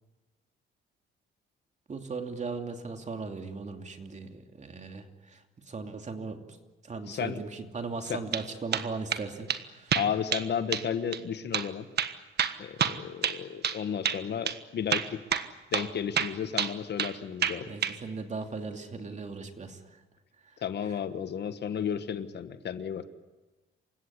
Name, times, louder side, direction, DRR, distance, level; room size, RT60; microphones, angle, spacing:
voice 1, 1.9-6.6 6.8-10.0 17.6-20.0 20.4-20.6, right 4 dB, 35° right, 5 dB, 2.9 m, -38 dB
voice 2, 7.1-7.4 8.1-8.2 9.9-11.9 12.6-15.2 15.7-17.7 20.6-23.1, left 8 dB, 60° left, 11 dB, 1.5 m, -33 dB
sound 1, 8.1-8.5 8.7-9.2 9.5-9.6 9.9-10.5 10.7-10.9 11.1-11.2 11.5-11.7 12.0-13.8 14.0-14.2 14.5-14.6 14.9-15.9 16.2-17.1 17.4-18.0, right 8 dB, 55° right, 1.4 m, -28 dB
28.0 x 16.5 x 10.0 m, 1.2 s
cardioid pair, 90°, 20 cm